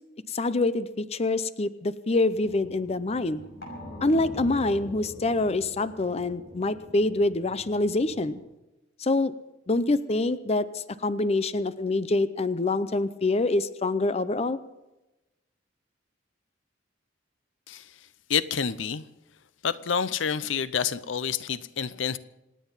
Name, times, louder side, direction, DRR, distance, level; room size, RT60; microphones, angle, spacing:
voice 1, 0.3-3.4 4.0-8.4 9.0-9.3 9.7-14.6, left 2 dB, 35° left, 0.6 m, -26 dB
sound 1, 2.3-8.4, left 1 dB, 55° left, 5.8 m, -44 dB
voice 2, 18.3-19.0 19.6-22.2, left 7 dB, 75° left, 0.6 m, -28 dB
26.5 x 9.4 x 5.6 m
head